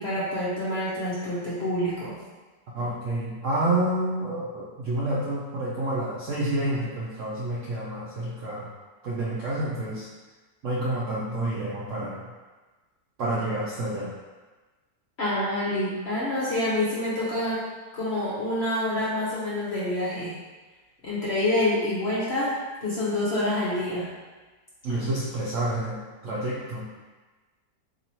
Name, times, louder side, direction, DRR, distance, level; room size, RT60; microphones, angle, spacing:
voice 1, 0.0-2.2 15.2-17.7 17.9-20.3 21.0-22.5 22.8-24.1, left 1 dB, 50° left, -8 dB, 0.8 m, -27 dB
voice 2, 2.7-8.7 9.0-10.1 10.6-12.2 13.2-14.2 24.8-26.9, right 1 dB, 70° right, -6 dB, 0.7 m, -29 dB
3.0 x 2.9 x 4.1 m, 1.3 s
omnidirectional pair, 1.9 m